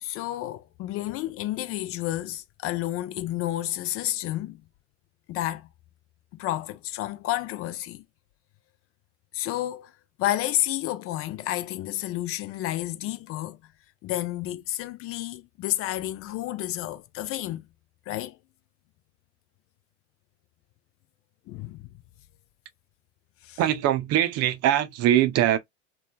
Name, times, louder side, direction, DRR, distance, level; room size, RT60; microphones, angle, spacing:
voice 1, 0.0-4.6 5.3-5.7 6.3-8.0 9.3-9.9 10.2-13.6 14.0-17.6 18.1-18.4 21.5-21.9 23.4-23.6, left 14 dB, 40° left, 0.5 m, -30 dB
voice 2, 23.6-25.6, right 12 dB, 45° right, 0.6 m, -22 dB
3.1 x 2.2 x 2.2 m
hypercardioid pair, 80°, 35 cm